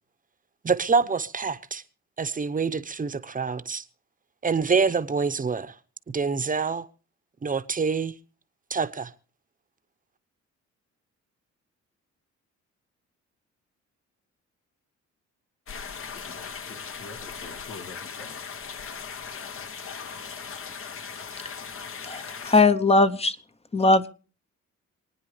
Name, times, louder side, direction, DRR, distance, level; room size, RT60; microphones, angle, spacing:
voice 1, 0.6-1.8 2.2-3.8 4.4-5.8 6.1-6.9 7.4-8.1 8.7-9.1, right 5 dB, 25° right, 1.0 m, -26 dB
sound 1, 15.7-22.6, left 6 dB, 45° left, 1.1 m, -38 dB
voice 2, 16.1-18.6, left 3 dB, 80° left, 2.7 m, -46 dB
voice 3, 22.0-23.4 23.7-24.1, left 3 dB, 20° left, 0.9 m, -20 dB
27.0 x 9.6 x 3.3 m
cardioid pair, 90°, 30 cm